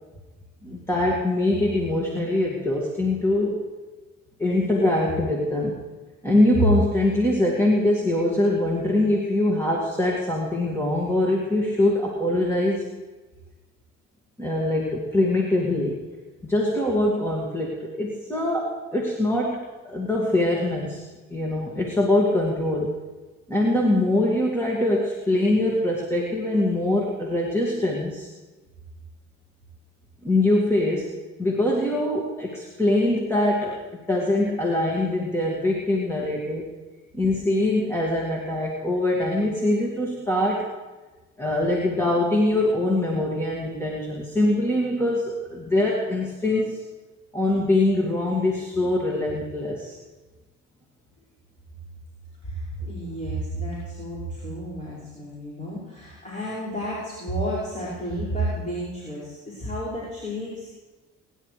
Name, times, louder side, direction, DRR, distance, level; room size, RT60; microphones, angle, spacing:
voice 1, 0.6-3.6 4.4-5.8 6.2-12.9 14.4-16.0 16.4-22.9 23.5-28.3 30.2-31.1 31.4-36.7 37.1-40.7 41.4-46.8 47.3-50.0, left 1 dB, 10° left, -3 dB, 2.2 m, -23 dB
voice 2, 52.4-60.7, right 1 dB, 25° left, -8 dB, 5.7 m, -31 dB
24.0 x 11.0 x 3.3 m, 1.2 s
cardioid pair, 90°, 30 cm